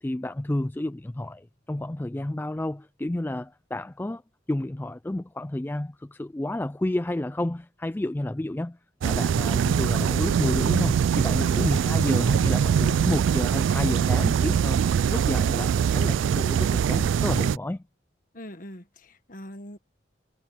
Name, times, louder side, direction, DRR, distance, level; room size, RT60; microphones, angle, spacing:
voice 1, 0.0-4.2 4.5-8.8 9.0-14.8 15.1-17.8, left 1 dB, 10° left, 0.3 m, -30 dB
sound 1, 9.0-17.6, right 7 dB, 90° right, 0.3 m, -23 dB
voice 2, 11.5-11.8 18.3-19.8, equal, 45° left, 1.5 m, -42 dB
head